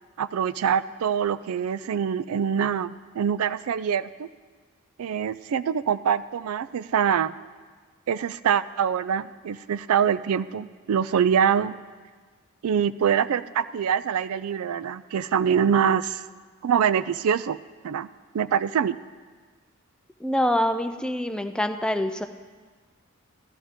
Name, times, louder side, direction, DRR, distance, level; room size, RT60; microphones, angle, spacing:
voice 1, 0.2-4.3 5.0-7.3 8.1-11.8 12.6-16.3 16.6-17.6 17.8-18.1 18.3-19.0, right 8 dB, 75° right, 15 dB, 0.4 m, -24 dB
voice 2, 20.2-22.3, left 1 dB, 5° left, 8 dB, 0.4 m, -25 dB
15.0 x 12.0 x 3.6 m, 1.5 s
head